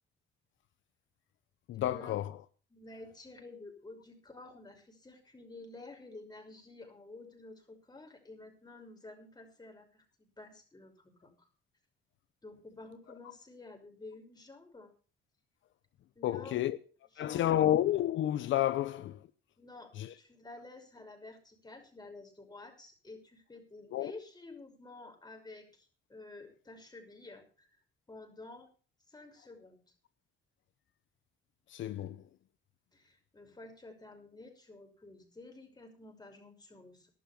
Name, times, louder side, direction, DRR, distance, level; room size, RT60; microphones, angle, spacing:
voice 1, 1.7-2.3 16.2-16.8 17.2-19.2 20.0-20.1 23.9-24.1 31.7-32.2, left 12 dB, 75° left, 0.8 m, -30 dB
voice 2, 2.7-11.5 12.4-14.9 16.1-16.6 17.1-17.5 19.6-27.7 28.1-28.7 29.1-29.8 32.9-37.1, left 2 dB, 20° left, 5.8 m, -51 dB
12.5 x 12.0 x 5.9 m
cardioid pair, 90°, 20 cm